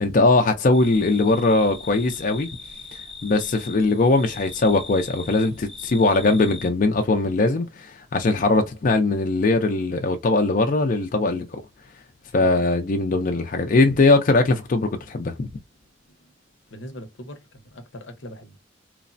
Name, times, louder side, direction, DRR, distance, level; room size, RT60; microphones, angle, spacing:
voice 1, 0.0-2.5 2.9-11.6 12.3-15.5, left 3 dB, 45° left, 0.4 m, -20 dB
sound 1, 0.7-6.7, left 4 dB, ahead, 0.7 m, -40 dB
voice 2, 16.7-18.6, left 1 dB, 85° left, 0.7 m, -40 dB
3.2 x 2.0 x 2.5 m
head